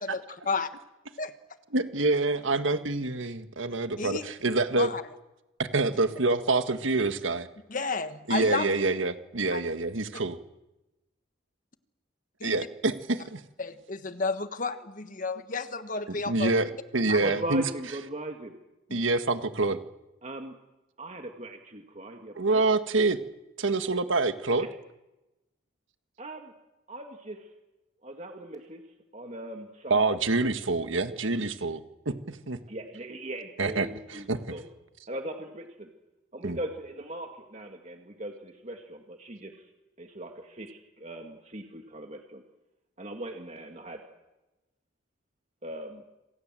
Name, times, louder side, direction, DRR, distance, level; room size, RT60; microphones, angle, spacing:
voice 1, 0.0-0.7 1.2-1.3 4.0-4.3 4.8-5.0 7.7-8.7 9.5-9.6 12.4-12.6 13.6-16.6 17.1-17.2 18.9-19.0, left 4 dB, 40° left, 10 dB, 1.5 m, -32 dB
voice 2, 1.7-4.9 5.6-7.5 8.3-10.4 12.4-13.4 16.1-17.7 18.9-19.8 22.4-23.2 23.6-24.7 29.9-32.6 33.6-34.4 36.4-36.6, right 3 dB, 80° right, 9 dB, 1.7 m, -26 dB
voice 3, 17.2-18.5 20.2-20.5 21.0-22.6 24.6-24.7 26.2-26.5 26.9-27.4 28.0-28.8 29.1-30.1 32.7-34.3 34.5-34.6 35.1-35.9 36.3-39.5 40.0-42.4 43.0-44.0 45.6-46.0, right 1 dB, 35° right, 4 dB, 2.1 m, -39 dB
27.5 x 26.5 x 7.7 m, 1.0 s
head